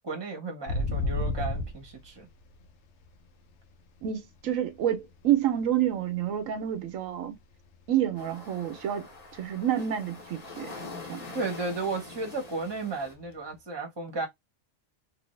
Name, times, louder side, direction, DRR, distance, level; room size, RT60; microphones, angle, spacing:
voice 1, 0.0-2.3 11.3-14.3, right 3 dB, 20° right, 1.0 m, -34 dB
sound 1, 0.7-4.0 4.3-6.6 6.9-7.2 7.5-9.4 9.8-9.9 10.2-10.6 10.9-11.0 13.2-13.3, left 2 dB, 65° left, 0.8 m, -33 dB
voice 2, 4.0-7.3 7.9-10.7 11.1-11.3, right 11 dB, 80° right, 1.1 m, -28 dB
sound 2, 8.2-13.1, left 3 dB, 35° left, 1.0 m, -44 dB
2.9 x 2.6 x 3.1 m
omnidirectional pair, 1.4 m